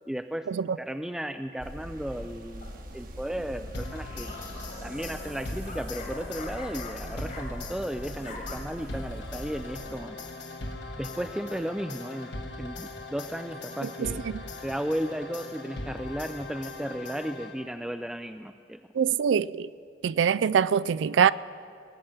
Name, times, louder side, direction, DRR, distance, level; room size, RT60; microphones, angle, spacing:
voice 1, 0.1-0.5 0.8-4.3 4.8-10.2 11.0-12.3 12.6-14.3 14.6-18.8, equal, 5° right, 0.3 m, -35 dB
sound 1, 1.6-10.0, right 1 dB, 55° right, 1.2 m, -42 dB
sound 2, 2.6-3.0 3.9-7.8 8.1-8.5, left 3 dB, 50° left, 1.7 m, -44 dB
sound 3, 3.7-17.9, left 2 dB, 75° left, 1.4 m, -40 dB
voice 2, 14.0-14.4 18.9-19.7 20.0-21.3, right 7 dB, 90° right, 0.3 m, -24 dB
19.5 x 6.5 x 8.7 m
head